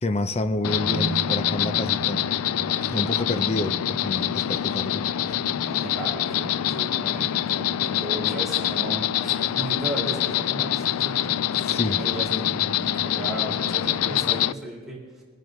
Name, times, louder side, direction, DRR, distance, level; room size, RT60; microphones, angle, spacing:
voice 1, 0.0-2.3 2.8-5.4 11.6-12.0, left 2 dB, 30° left, 9 dB, 0.6 m, -29 dB
Insect, 0.6-14.5, left 12 dB, 90° left, 0.3 m, -25 dB
sound 1, 0.6-14.5, right 3 dB, 40° right, 0.5 m, -39 dB
voice 2, 5.6-11.2 11.6-15.2, right 1 dB, ahead, -5 dB, 3.6 m, -35 dB
23.5 x 10.5 x 3.2 m, 1.5 s
head